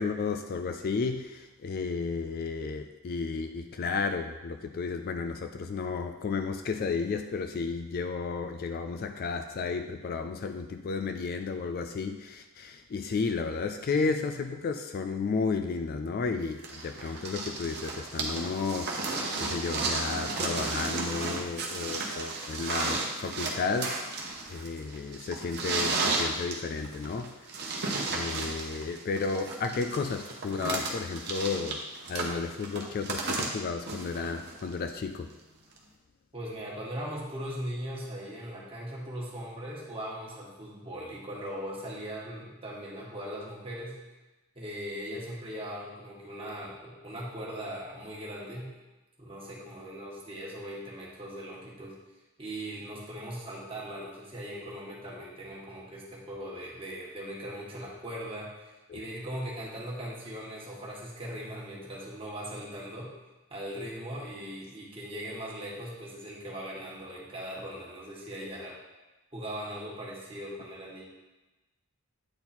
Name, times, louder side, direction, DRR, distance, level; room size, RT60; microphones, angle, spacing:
voice 1, 0.0-24.0 24.5-27.4 28.1-31.8 32.1-35.3 58.9-59.0, left 4 dB, 40° left, 7 dB, 0.3 m, -33 dB
sound 1, 16.6-34.7 35.8-35.9, right 3 dB, 45° right, 1.0 m, -33 dB
voice 2, 36.3-44.0 44.5-48.7 49.2-51.9 52.4-63.1 63.5-68.8 69.3-71.0, equal, 25° right, -5 dB, 1.5 m, -39 dB
8.7 x 4.0 x 4.3 m, 1.1 s
head